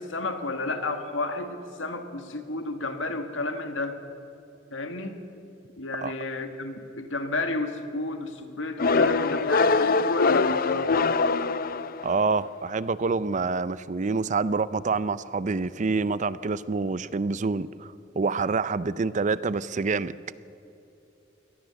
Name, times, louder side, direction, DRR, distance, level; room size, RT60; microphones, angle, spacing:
voice 1, 0.0-4.0 4.7-5.2 5.8-10.9, left 2 dB, 75° left, 6 dB, 1.9 m, -31 dB
sound 1, 8.8-12.3, left 4 dB, 50° left, 0.6 m, -23 dB
voice 2, 12.0-20.1, right 4 dB, 40° right, 17 dB, 0.5 m, -27 dB
23.0 x 18.0 x 7.0 m, 2.8 s
head